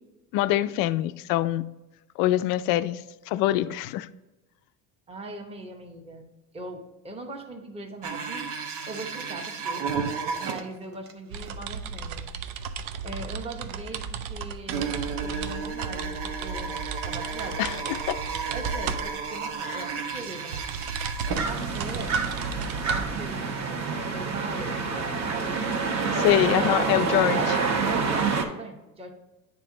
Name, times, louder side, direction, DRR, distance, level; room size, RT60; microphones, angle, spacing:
voice 1, 0.3-1.7 2.2-4.1 17.6-17.7 18.1-18.2 19.7-19.8 26.1-27.4, left 14 dB, 50° left, 0.4 m, -24 dB
voice 2, 5.1-6.2 6.5-8.4 8.9-9.9 10.4-12.3 13.0-16.8 17.0-17.9 18.5-20.9 21.4-22.2 22.9-26.4 27.3-27.5 27.9-29.1, right 2 dB, 15° right, 0.9 m, -40 dB
sound 1, 8.0-11.1 11.4-11.5 12.0-12.1 12.8-12.9 14.7-22.1 22.3-22.4 23.1-23.2 23.8-23.9 24.4-25.3 25.8-26.2 27.5-27.6 27.8-27.9, right 5 dB, 90° right, 1.1 m, -33 dB
sound 2, 11.3-25.0, right 6 dB, 65° right, 0.6 m, -35 dB
sound 3, 21.3-28.4, right 4 dB, 35° right, 1.1 m, -27 dB
9.1 x 3.6 x 3.8 m
supercardioid pair, 115°, 44 cm